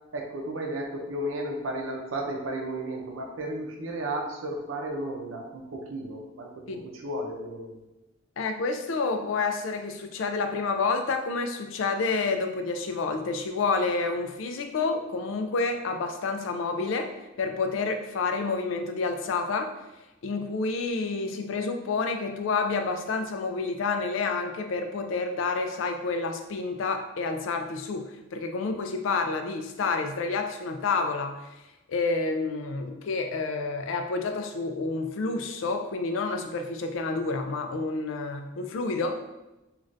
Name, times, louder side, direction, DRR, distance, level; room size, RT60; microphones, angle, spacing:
voice 1, 0.1-7.8, right 1 dB, 80° right, 1 dB, 0.6 m, -34 dB
voice 2, 8.4-17.1 17.4-19.7 20.2-31.5 31.9-39.2, left 4 dB, 70° left, 6 dB, 0.4 m, -29 dB
2.5 x 2.4 x 3.2 m, 0.98 s
head